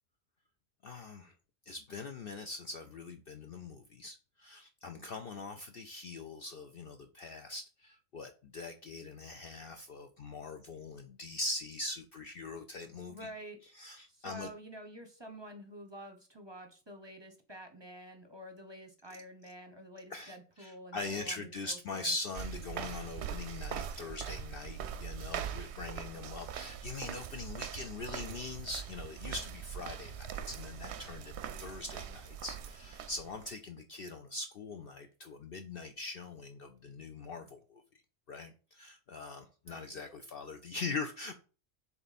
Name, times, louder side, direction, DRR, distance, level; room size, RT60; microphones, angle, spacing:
voice 1, 0.8-1.3 1.7-13.3 13.7-14.5 20.1-37.8 38.3-41.4, left 3 dB, 55° left, 0.7 m, -42 dB
voice 2, 13.1-13.6 14.1-22.1 39.7-40.0, right 1 dB, 25° right, 0.8 m, -49 dB
sound 1, 22.3-33.5, right 8 dB, 65° right, 0.8 m, -42 dB
7.0 x 3.4 x 4.1 m
omnidirectional pair, 1.4 m